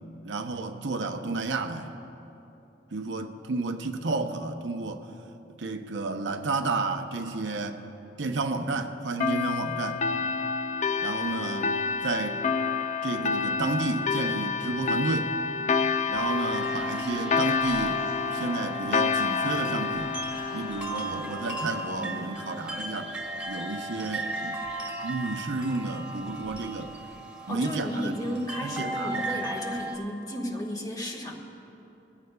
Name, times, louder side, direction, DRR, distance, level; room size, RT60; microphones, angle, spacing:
voice 1, 0.2-1.9 2.9-5.1 5.6-7.8 8.2-10.0 11.0-11.7 12.0-12.4 13.0-15.3 16.1-18.0 18.3-20.1 20.5-23.1 23.5-24.6 25.0-26.9 27.5-28.1 28.6-29.2, right 3 dB, 85° right, 6 dB, 0.8 m, -31 dB
sound 1, 9.2-22.3, left 5 dB, 40° left, 0.4 m, -29 dB
sound 2, 16.1-30.0, right 2 dB, 5° right, 1.7 m, -36 dB
voice 2, 27.5-31.4, equal, 20° left, -1 dB, 1.5 m, -33 dB
22.0 x 15.5 x 2.3 m, 2.9 s
head